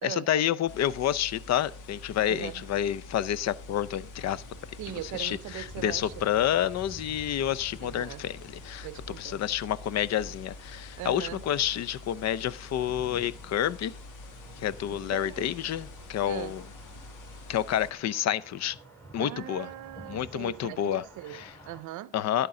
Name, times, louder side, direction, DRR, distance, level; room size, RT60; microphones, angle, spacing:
voice 1, 0.0-4.4 5.1-8.9 9.2-13.9 14.6-16.6 17.5-18.8 19.1-19.7 20.1-21.0 21.3-21.5 22.1-22.5, left 11 dB, 60° left, 0.6 m, -29 dB
sound 1, 0.7-17.9, left 2 dB, 85° left, 1.6 m, -46 dB
voice 2, 2.3-2.6 4.8-6.3 7.8-8.3 8.8-9.4 11.0-11.5 14.9-15.7 16.3-16.6 19.2-22.2, right 15 dB, 80° right, 0.5 m, -40 dB
sound 2, 4.2-21.8, right 2 dB, 10° left, 2.7 m, -52 dB
11.5 x 8.2 x 3.7 m
cardioid pair, 90°, 30 cm